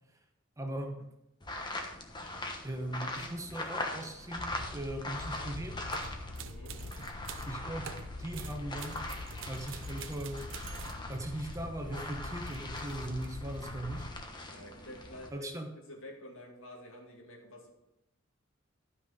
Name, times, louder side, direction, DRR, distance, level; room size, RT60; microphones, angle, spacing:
voice 1, 0.6-1.1 2.6-5.8 7.5-7.9 8.2-9.0 9.5-10.5 11.1-14.1 15.3-15.7, right 1 dB, 15° right, 3 dB, 1.0 m, -39 dB
sound 1, 1.4-6.4 6.7-15.3, left 2 dB, 20° left, 1.1 m, -42 dB
sound 2, 4.4-14.2, left 2 dB, 85° left, 1.1 m, -44 dB
sound 3, 5.9-7.6 7.8-11.1 12.3-13.3, right 7 dB, 65° right, 0.7 m, -48 dB
voice 2, 6.4-6.8 14.5-15.5 15.9-17.7, left 1 dB, 70° left, -1 dB, 2.4 m, -49 dB
12.0 x 5.7 x 5.1 m, 0.88 s
head